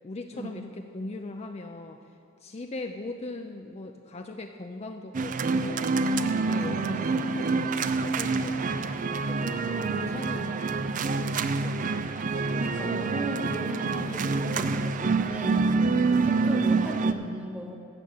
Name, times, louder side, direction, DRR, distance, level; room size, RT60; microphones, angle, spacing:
voice 1, 0.0-2.1 2.4-5.9 6.2-12.1 12.4-12.5, left 2 dB, 30° left, 5 dB, 0.5 m, -40 dB
sound 1, 5.1-17.1, right 4 dB, 40° right, 0.4 m, -27 dB
voice 2, 9.8-10.2 12.5-15.6 16.2-17.8, right 1 dB, 5° right, 2 dB, 1.2 m, -36 dB
15.0 x 6.9 x 7.7 m, 2.7 s
head